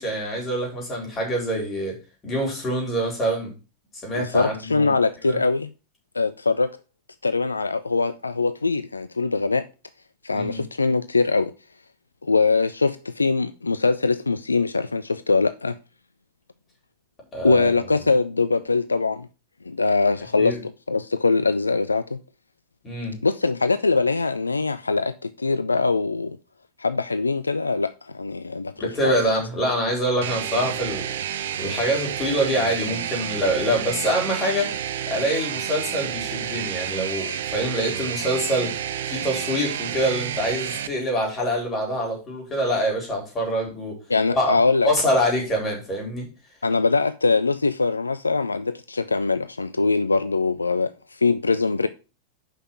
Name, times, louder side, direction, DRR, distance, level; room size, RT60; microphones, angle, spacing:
voice 1, 0.0-2.0 2.2-3.5 4.0-5.0 5.3-5.4 10.3-10.6 17.3-17.7 20.4-20.6 22.8-23.2 28.8-31.1 31.6-34.7 35.1-38.8 39.1-44.0 44.3-44.6 44.8-46.3, equal, 25° left, 4.5 m, -25 dB
voice 2, 4.2-5.7 6.1-6.8 7.2-9.7 10.2-11.5 12.2-15.7 17.4-19.3 19.7-22.2 23.2-26.4 26.8-29.1 44.1-44.9 46.6-51.9, left 3 dB, 80° left, 0.4 m, -22 dB
sound 1, 30.2-40.9, right 9 dB, 60° right, 0.6 m, -30 dB
5.7 x 5.7 x 5.9 m
figure-of-eight pair, 90°, 0 cm